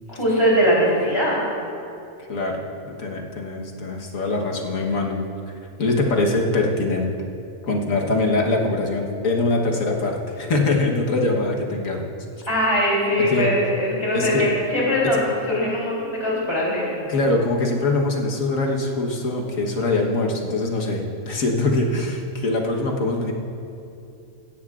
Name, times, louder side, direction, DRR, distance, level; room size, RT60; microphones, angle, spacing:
voice 1, 0.1-1.4 12.5-16.9 20.7-20.9, equal, 20° left, -6 dB, 3.4 m, -21 dB
voice 2, 2.2-5.2 5.8-7.1 7.6-12.1 13.2-13.5 14.1-14.5 17.1-23.3, left 2 dB, 85° left, 0 dB, 1.6 m, -23 dB
17.0 x 13.0 x 2.5 m, 2.6 s
omnidirectional pair, 1.4 m